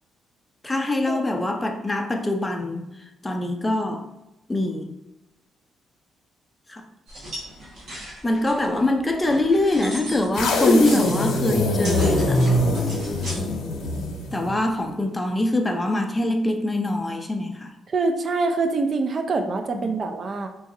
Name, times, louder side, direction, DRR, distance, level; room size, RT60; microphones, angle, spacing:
voice 1, 0.6-4.1 4.5-4.9 6.7-6.8 8.2-12.8 13.3-13.5 14.3-17.7 19.8-20.0, left 1 dB, 15° left, 4 dB, 0.5 m, -24 dB
sound 1, 7.1-13.4, equal, 75° right, 1.3 m, -38 dB
sound 2, 10.3-14.6, left 1 dB, 90° left, 0.7 m, -22 dB
voice 2, 17.9-20.5, right 3 dB, 45° right, 5 dB, 0.4 m, -25 dB
3.9 x 2.4 x 2.7 m, 0.93 s
cardioid pair, 90°, 0 cm